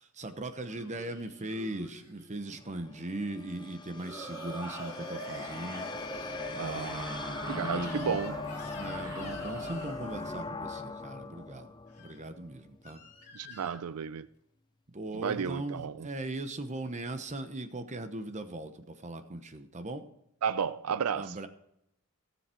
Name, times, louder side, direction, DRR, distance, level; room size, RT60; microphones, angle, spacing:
voice 1, 0.0-8.2 8.7-11.7 12.0-13.0 14.9-20.1 21.1-21.5, right 1 dB, 30° right, 1.0 m, -39 dB
sound 1, 0.7-2.4 3.9-10.5, right 1 dB, 15° right, 3.1 m, -43 dB
sound 2, 2.6-12.9, left 3 dB, 20° left, 0.5 m, -41 dB
voice 2, 6.6-7.0 7.4-8.4 13.3-14.3 15.1-16.1 20.4-21.3, right 7 dB, 80° right, 0.5 m, -33 dB
Crying sobbing / Screech, 7.8-10.0 11.9-12.2 12.8-13.8, left 4 dB, 40° left, 3.9 m, -49 dB
17.0 x 7.2 x 4.5 m
head